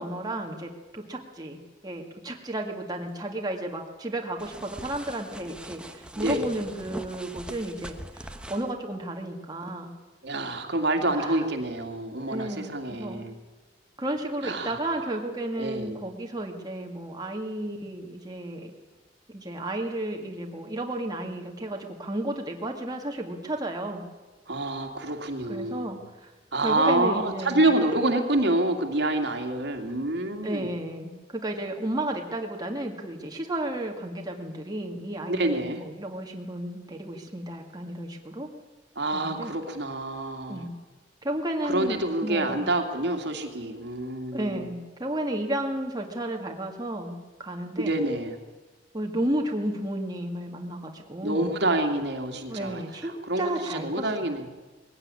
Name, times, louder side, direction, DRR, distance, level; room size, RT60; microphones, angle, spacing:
voice 1, 0.0-9.9 11.1-11.5 12.2-13.2 14.0-18.7 19.3-24.0 25.5-26.3 26.6-27.7 30.4-38.5 39.1-39.5 40.5-40.7 41.2-42.7 44.3-48.0 48.9-51.5 52.5-54.3, right 1 dB, 20° right, 1 dB, 2.1 m, -33 dB
sound 1, 4.4-8.7, right 1 dB, 5° right, 1.2 m, -41 dB
voice 2, 10.2-13.3 14.4-15.1 15.6-16.0 24.5-26.0 26.5-30.7 35.3-35.8 39.0-40.7 41.6-44.6 47.8-48.3 51.2-54.5, right 2 dB, 65° right, 4 dB, 2.5 m, -27 dB
20.5 x 16.0 x 9.8 m, 1.2 s
head